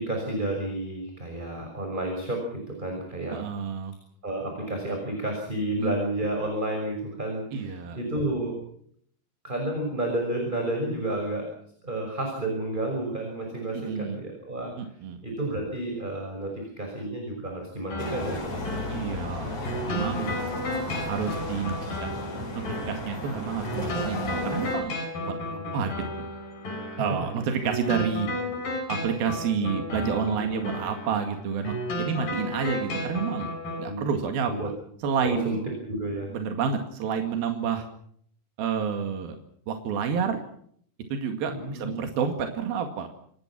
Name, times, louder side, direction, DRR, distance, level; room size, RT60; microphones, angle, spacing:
voice 1, 0.0-3.4 4.2-8.6 9.4-11.5 11.8-14.7 15.2-18.4 25.2-25.7 26.9-27.0 27.5-27.6 29.6-29.8 30.3-30.7 33.8-34.1 34.5-34.7 35.2-35.6 35.9-36.3 41.5-41.9, right 1 dB, 10° right, 2 dB, 6.0 m, -31 dB
voice 2, 3.3-3.9 5.8-5.9 7.5-8.0 13.7-14.2 14.8-15.2 18.9-19.6 19.9-20.3 21.1-21.8 22.0-22.1 22.9-25.4 25.7-25.9 27.0-28.3 28.9-33.5 33.8-34.7 35.0-35.6 36.3-37.9 38.6-39.4 39.7-40.4 41.1-43.1, right 6 dB, 85° right, 5 dB, 3.9 m, -29 dB
sound 1, 17.9-33.9, left 1 dB, 65° left, 8.5 m, -34 dB
sound 2, 18.0-24.8, left 1 dB, 45° left, 8.8 m, -34 dB
28.0 x 20.0 x 6.0 m, 0.64 s
omnidirectional pair, 4.1 m